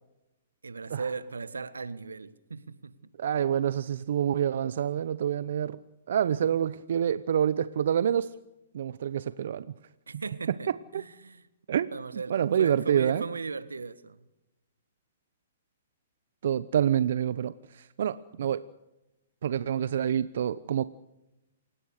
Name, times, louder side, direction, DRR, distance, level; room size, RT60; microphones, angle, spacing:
voice 1, 0.6-3.0 6.4-6.5 10.1-11.5 11.9-14.2, right 4 dB, 85° right, 1.5 m, -38 dB
voice 2, 3.2-5.8 6.1-8.3 8.7-9.7 10.1-10.2 10.9-11.0 11.7-11.9 12.3-13.2 16.4-18.6 19.4-20.8, right 9 dB, 65° right, 0.8 m, -27 dB
29.0 x 17.5 x 6.6 m
hypercardioid pair, 125°, 0 cm